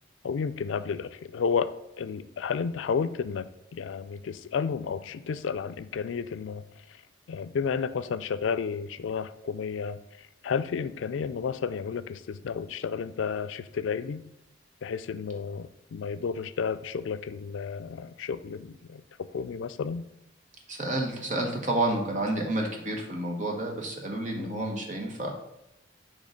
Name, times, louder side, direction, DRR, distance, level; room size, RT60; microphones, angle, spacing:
voice 1, 0.2-6.7 7.3-10.0 10.4-14.3 14.8-19.0 19.3-20.0 24.4-24.7, left 6 dB, 90° left, 13 dB, 0.4 m, -32 dB
voice 2, 20.7-25.3, right 1 dB, 40° right, 1 dB, 1.1 m, -30 dB
6.4 x 3.1 x 5.0 m, 0.88 s
head